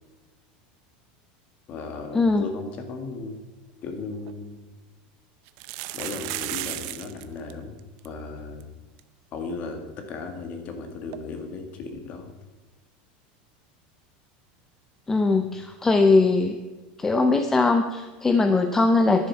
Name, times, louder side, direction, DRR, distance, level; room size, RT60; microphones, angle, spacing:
voice 1, 1.7-3.4 3.8-4.6 5.9-7.8 8.0-8.7 9.3-12.3, left 4 dB, 30° left, 5 dB, 1.9 m, -36 dB
sound 1, 3.9-4.0 4.3-4.4 5.5-7.2 7.5-7.6 7.8-8.1 8.6-8.7 9.0-9.1 11.1-11.2, right 17 dB, 50° right, 0.7 m, -34 dB
voice 2, 15.1-16.6 17.0-19.3, left 3 dB, 10° left, 7 dB, 0.5 m, -20 dB
11.0 x 10.5 x 5.7 m, 1.2 s
supercardioid pair, 175°, 5 cm